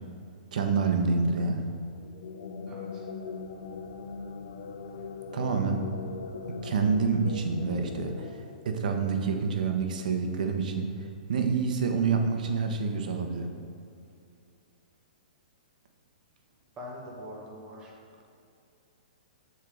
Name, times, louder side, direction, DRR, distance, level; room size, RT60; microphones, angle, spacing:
voice 1, 0.5-1.7 5.3-5.8 6.5-13.6, right 5 dB, 60° right, 4 dB, 1.0 m, -28 dB
sound 1, 2.0-9.4, left 5 dB, 65° left, 0.6 m, -40 dB
voice 2, 2.7-3.1 16.8-18.0, left 1 dB, 15° right, -2 dB, 1.1 m, -43 dB
7.0 x 4.5 x 6.4 m, 2.5 s
hypercardioid pair, 165°, 5 cm